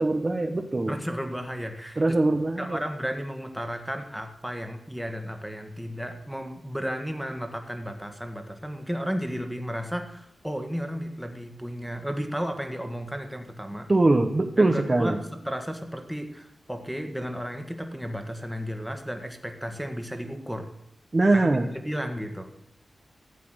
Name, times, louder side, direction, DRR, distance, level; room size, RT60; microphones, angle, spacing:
voice 1, 0.0-0.9 2.0-2.8 13.9-15.2 21.1-21.7, right 2 dB, 30° right, 4 dB, 1.1 m, -22 dB
voice 2, 0.9-2.2 2.6-13.9 14.6-20.7 21.3-22.5, equal, 5° right, 5 dB, 1.7 m, -33 dB
14.0 x 8.4 x 8.1 m, 0.80 s
wide cardioid pair, 95°, 0 cm